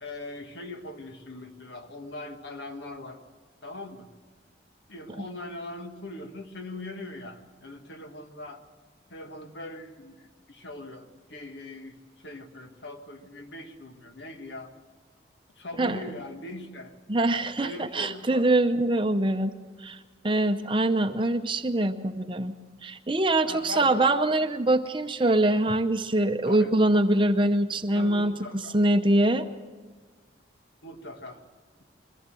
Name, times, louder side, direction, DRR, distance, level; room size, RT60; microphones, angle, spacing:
voice 1, 0.0-3.2 3.6-4.1 4.9-8.6 9.1-14.7 15.6-17.0 17.6-18.5 23.4-24.1 26.4-26.7 27.9-28.8 29.3-29.4 30.8-31.4, left 2 dB, 65° left, 6 dB, 1.6 m, -41 dB
voice 2, 17.1-19.5 19.8-20.0 20.2-22.5 22.8-29.5, right 1 dB, 25° right, 8 dB, 0.7 m, -24 dB
22.5 x 15.0 x 7.6 m, 1.4 s
head